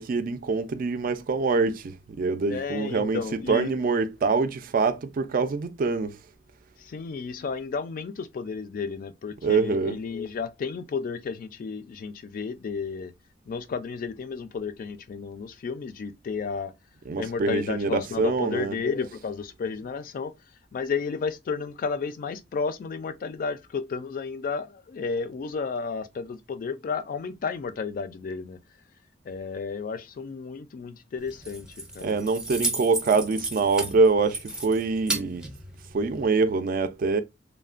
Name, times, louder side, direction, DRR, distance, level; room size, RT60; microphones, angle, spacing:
voice 1, 0.0-3.2 3.5-6.2 9.4-10.0 17.1-18.8 32.0-35.5 35.9-37.2, right 4 dB, 50° right, 0.4 m, -25 dB
voice 2, 2.5-3.7 6.8-13.1 13.5-16.7 17.2-20.3 20.7-28.6 29.3-32.2, left 5 dB, 50° left, 0.3 m, -32 dB
Keys jangling, 31.2-36.2, right 2 dB, 5° right, 0.6 m, -34 dB
3.1 x 2.1 x 2.4 m
head